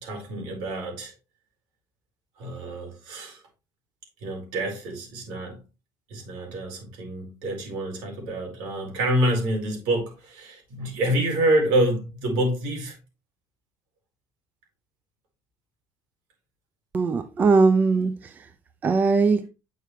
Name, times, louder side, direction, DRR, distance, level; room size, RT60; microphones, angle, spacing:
voice 1, 0.0-1.1 2.4-3.4 4.2-5.6 6.1-12.9, right 1 dB, 80° right, 4.6 m, -27 dB
voice 2, 16.9-18.3 18.8-19.5, right 4 dB, 25° right, 0.5 m, -20 dB
8.9 x 6.6 x 3.1 m
cardioid pair, 155°, 7 cm